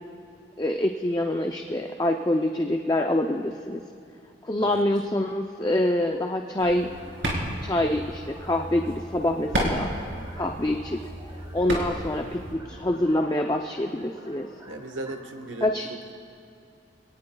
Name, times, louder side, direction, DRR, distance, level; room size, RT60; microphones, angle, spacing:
voice 1, 0.6-3.8 4.4-6.9 7.6-9.9 10.3-11.1 11.5-14.5 15.6-15.9, left 1 dB, 20° left, 3 dB, 0.5 m, -26 dB
sound 1, 5.5-15.5, right 1 dB, 20° right, 4.0 m, -49 dB
sound 2, 6.6-12.5, equal, 60° right, 3.7 m, -32 dB
voice 2, 14.6-16.1, right 2 dB, 80° right, 6 dB, 1.2 m, -37 dB
26.5 x 18.5 x 2.3 m, 2.6 s
head